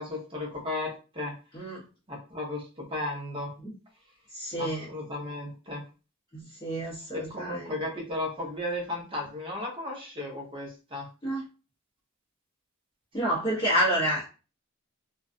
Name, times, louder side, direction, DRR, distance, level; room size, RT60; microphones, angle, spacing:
voice 1, 0.0-1.3 2.1-3.5 4.6-5.8 7.1-11.1, left 2 dB, 25° right, -1 dB, 0.8 m, -35 dB
voice 2, 4.3-4.9 6.3-7.8 11.2-11.4 13.1-14.2, equal, 20° left, -8 dB, 0.7 m, -29 dB
2.4 x 2.2 x 2.4 m, 0.33 s
head